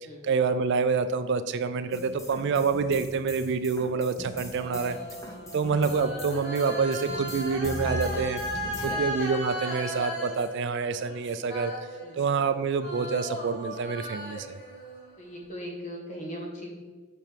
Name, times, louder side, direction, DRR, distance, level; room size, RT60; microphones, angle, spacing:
voice 1, 0.2-5.0 5.5-8.4 8.8-11.7 12.1-14.5, right 5 dB, 50° right, 11 dB, 0.3 m, -27 dB
sound 1, 1.9-9.0, equal, 15° left, 0.7 m, -40 dB
sound 2, 3.8-12.5 12.8-15.4, equal, 50° left, 1.5 m, -37 dB
voice 2, 8.6-9.1 12.0-12.3 15.2-16.8, equal, 35° left, 0 dB, 1.4 m, -39 dB
6.9 x 5.6 x 4.5 m, 1.4 s
head